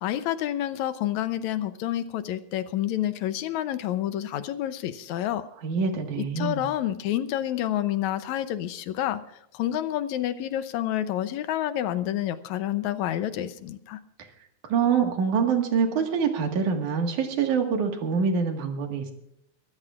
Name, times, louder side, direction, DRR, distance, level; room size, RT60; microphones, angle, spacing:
voice 1, 0.0-5.4 6.2-9.2 9.5-14.0, left 12 dB, 80° left, 12 dB, 2.0 m, -29 dB
voice 2, 5.6-6.7 14.7-19.1, right 6 dB, 85° right, 4 dB, 3.2 m, -25 dB
23.0 x 14.5 x 2.5 m, 0.77 s
omnidirectional pair, 3.4 m